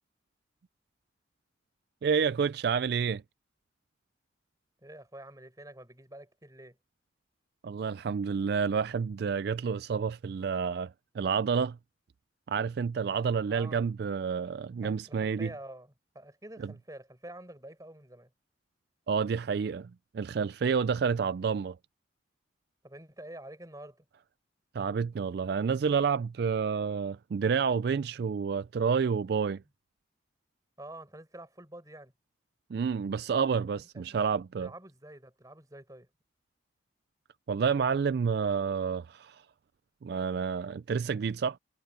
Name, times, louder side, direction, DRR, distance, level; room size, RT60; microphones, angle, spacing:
voice 1, 2.0-3.2 7.6-11.8 12.5-15.5 19.1-21.8 24.7-29.6 32.7-34.7 37.5-39.4 40.0-41.6, right 6 dB, 60° right, 0.3 m, -29 dB
voice 2, 4.8-6.8 13.5-13.8 14.8-18.3 22.8-24.1 30.8-32.1 33.9-34.3 34.6-36.1, right 1 dB, 20° right, 5.3 m, -48 dB
head